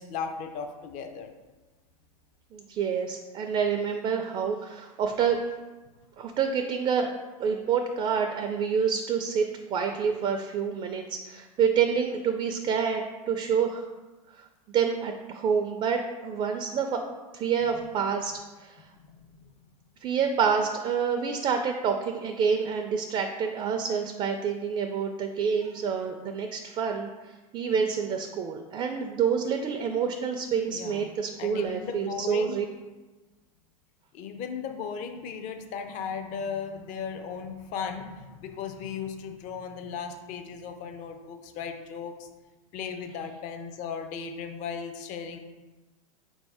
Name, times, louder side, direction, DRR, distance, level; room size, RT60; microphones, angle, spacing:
voice 1, 0.0-1.3 17.7-17.8 18.9-19.4 30.7-31.1 31.4-32.6 34.1-42.3 42.7-45.4, left 6 dB, 45° left, 6 dB, 0.5 m, -36 dB
voice 2, 2.5-5.5 6.2-7.1 7.4-13.9 14.3-17.0 17.3-18.3 18.6-18.8 20.0-32.6, right 6 dB, 30° right, 5 dB, 0.4 m, -28 dB
4.0 x 2.7 x 4.7 m, 1.2 s
hypercardioid pair, 100°, 19 cm